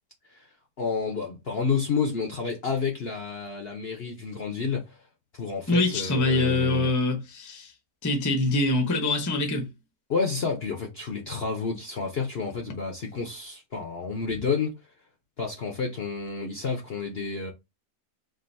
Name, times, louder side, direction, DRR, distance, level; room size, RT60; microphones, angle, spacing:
voice 1, 0.8-4.9 5.3-6.9 10.1-14.7 15.4-17.5, left 5 dB, 50° left, 0.8 m, -30 dB
voice 2, 5.7-7.7 8.0-9.7, left 2 dB, 20° left, 0.6 m, -24 dB
3.8 x 2.5 x 3.9 m
omnidirectional pair, 1.8 m